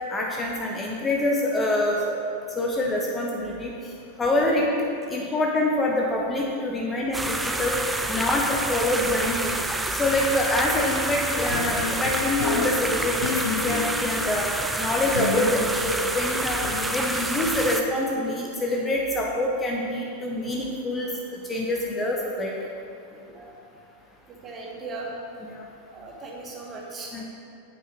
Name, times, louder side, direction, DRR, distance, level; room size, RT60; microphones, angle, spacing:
voice 1, 0.1-2.2 2.6-3.7 4.2-4.7 5.1-7.8 8.1-9.6 10.0-14.5 14.8-16.6 16.9-22.5 25.4-25.6 27.1-27.2, left 1 dB, 15° left, -2 dB, 0.8 m, -26 dB
sound 1, 7.1-17.8, right 2 dB, 5° right, 0.4 m, -28 dB
sound 2, 11.5-14.3 15.1-17.1, left 4 dB, 65° left, 0.5 m, -31 dB
voice 2, 24.4-25.1 25.9-27.2, right 3 dB, 25° right, -2 dB, 1.4 m, -38 dB
7.1 x 5.4 x 4.5 m, 2.6 s
figure-of-eight pair, 90°, 0 cm